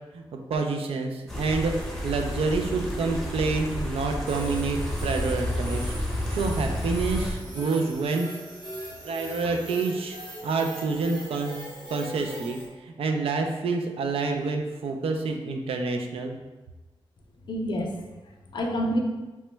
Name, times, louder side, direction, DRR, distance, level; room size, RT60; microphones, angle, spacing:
voice 1, 0.1-1.7 2.0-5.9 6.3-8.3 9.0-10.2 10.4-11.6 11.9-16.4, right 4 dB, 90° right, 4 dB, 0.4 m, -28 dB
sound 1, 1.3-7.3, left 1 dB, ahead, 0.6 m, -31 dB
sound 2, 4.3-12.7, equal, 50° right, 1.0 m, -40 dB
voice 2, 17.5-19.0, equal, 55° left, 1 dB, 0.5 m, -29 dB
2.9 x 2.1 x 3.2 m, 1.1 s
wide cardioid pair, 120°, 10 cm